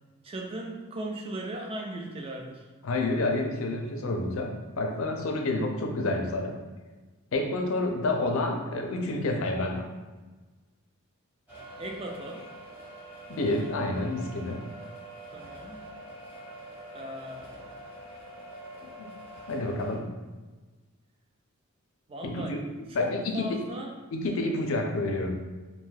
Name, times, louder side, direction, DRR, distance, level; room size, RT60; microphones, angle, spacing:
voice 1, 0.2-2.7 11.8-12.5 15.3-15.9 16.9-17.8 22.1-22.6 22.9-24.0, right 1 dB, 25° right, 1 dB, 0.3 m, -38 dB
voice 2, 2.8-6.6 7.3-9.9 13.3-14.6 18.8-19.1 19.5-20.1 22.2-22.6 22.9-23.6 24.1-25.4, left 2 dB, 65° left, 3 dB, 0.4 m, -29 dB
sound 1, 11.5-20.0, right 1 dB, 10° right, 1.1 m, -45 dB
2.6 x 2.3 x 3.2 m, 1.3 s
head